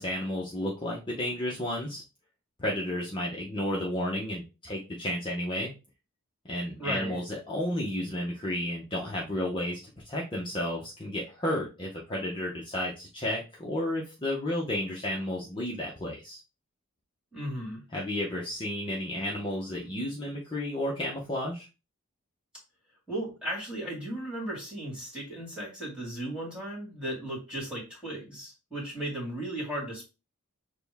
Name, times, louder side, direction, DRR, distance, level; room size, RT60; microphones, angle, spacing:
voice 1, 0.0-2.0 2.6-5.7 6.5-16.4 17.9-21.7, left 1 dB, 20° left, -4 dB, 0.8 m, -32 dB
voice 2, 6.8-7.2 17.3-17.8 23.1-30.0, right 1 dB, 5° right, -3 dB, 2.1 m, -36 dB
6.7 x 2.3 x 3.4 m, 0.29 s
head